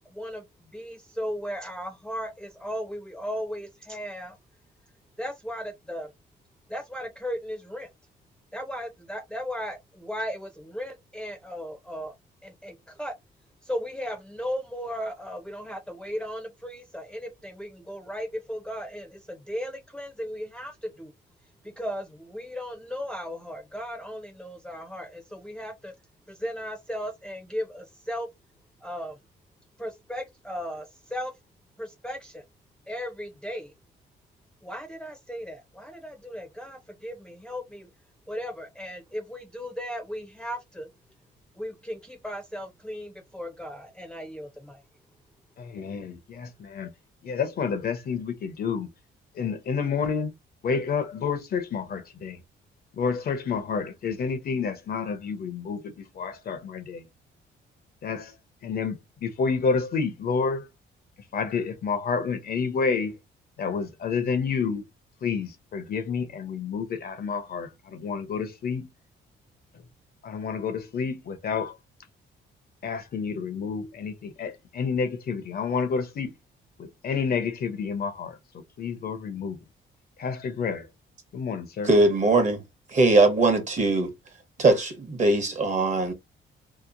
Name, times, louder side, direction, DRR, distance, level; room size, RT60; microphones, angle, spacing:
voice 1, 0.0-4.3 5.2-6.1 6.7-7.9 8.5-12.1 12.4-13.1 13.6-21.1 21.6-25.9 26.3-28.3 28.8-29.2 29.8-31.3 31.8-32.4 32.9-33.7 34.6-37.9 38.3-40.9 41.6-44.8, equal, 5° left, 0.6 m, -36 dB
voice 2, 45.6-46.9 47.2-48.9 49.3-50.3 50.6-52.4 52.9-57.0 58.0-58.3 58.6-60.7 61.3-63.2 63.6-64.8 65.2-68.9 70.2-71.8 72.8-76.3 76.8-79.6 80.2-80.9 81.3-81.9, left 5 dB, 50° left, 0.7 m, -29 dB
voice 3, 81.8-82.6 82.9-84.1 84.6-86.1, right 2 dB, 40° right, 1.0 m, -21 dB
2.8 x 2.0 x 2.5 m
cardioid pair, 90°, 20 cm